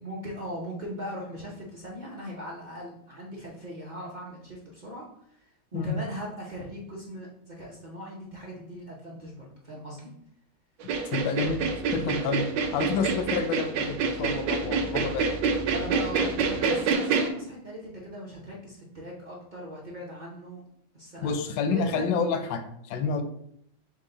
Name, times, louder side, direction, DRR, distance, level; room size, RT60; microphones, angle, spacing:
voice 1, 0.0-10.1 15.7-20.6 20.9-21.3 21.7-22.1, equal, 55° right, -4 dB, 0.5 m, -39 dB
voice 2, 10.8-11.6 11.9-12.4 12.7-15.3 21.2-23.2, left 5 dB, 80° left, 7 dB, 1.2 m, -29 dB
sound 1, 10.8-17.3, right 5 dB, 75° right, 1.2 m, -27 dB
sound 2, 11.4-16.9, left 2 dB, 30° left, 0.4 m, -42 dB
6.0 x 2.1 x 3.8 m, 0.70 s
omnidirectional pair, 2.0 m